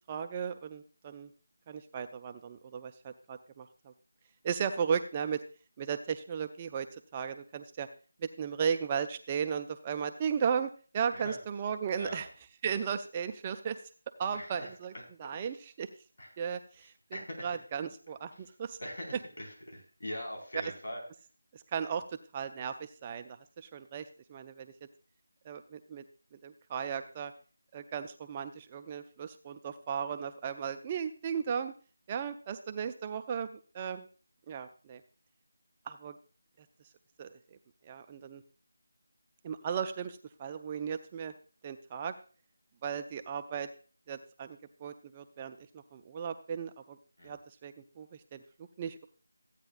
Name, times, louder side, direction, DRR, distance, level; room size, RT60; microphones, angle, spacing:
voice 1, 0.1-1.3 1.7-3.9 4.4-5.4 5.8-6.9 7.1-7.9 8.2-12.3 12.6-13.8 14.2-14.9 15.2-15.9 16.4-18.8 20.6-20.7 21.5-22.0 22.3-24.7 25.5-26.0 26.4-27.3 27.7-31.7 32.1-34.1 34.5-35.0 35.9-36.2 37.2-37.3 37.8-38.4 39.4-41.3 41.6-42.1 42.8-43.7 44.1-47.0 47.2-48.4 48.8-49.1, right 7 dB, 20° right, 7 dB, 0.4 m, -36 dB
voice 2, 14.3-15.5 16.2-16.3 17.1-17.6 18.8-21.0 47.2-47.4, equal, 70° left, 1 dB, 4.6 m, -42 dB
14.5 x 9.0 x 2.4 m, 0.38 s
figure-of-eight pair, 170°, 0 cm